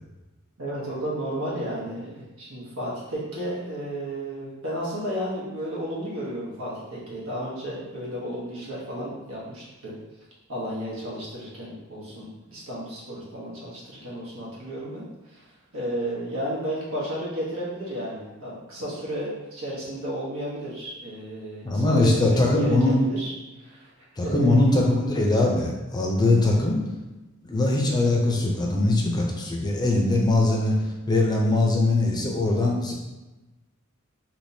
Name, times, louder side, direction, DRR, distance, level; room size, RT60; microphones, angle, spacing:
voice 1, 0.6-9.9 10.5-15.5 15.7-23.3 23.6-23.9 24.2-24.5, right 1 dB, 80° right, -6 dB, 1.2 m, -33 dB
voice 2, 21.6-22.9 24.2-26.8 27.4-32.9, left 2 dB, 20° left, -1 dB, 0.5 m, -21 dB
3.4 x 2.8 x 2.7 m, 1.1 s
head